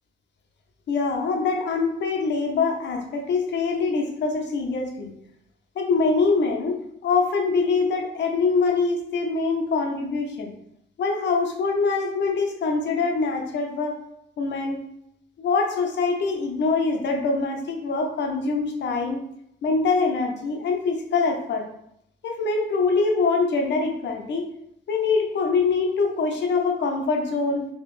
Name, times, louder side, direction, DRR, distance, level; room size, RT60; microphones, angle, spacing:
voice 1, 0.9-5.1 5.8-10.5 11.0-14.0 14.4-14.8 15.4-19.2 19.6-21.7 22.2-24.5 24.9-27.7, left 4 dB, 65° left, 2 dB, 0.7 m, -24 dB
3.1 x 2.9 x 3.1 m, 0.75 s
cardioid pair, 90°, 20 cm